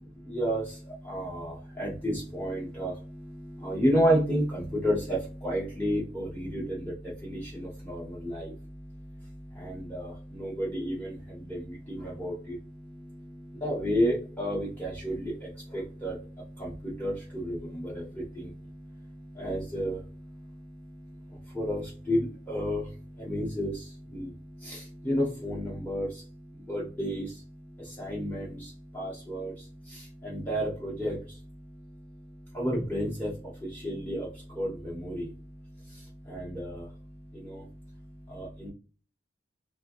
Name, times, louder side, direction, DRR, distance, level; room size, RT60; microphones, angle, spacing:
voice 1, 0.1-38.7, equal, 10° left, -5 dB, 0.9 m, -33 dB
3.2 x 3.1 x 2.5 m, 0.37 s
head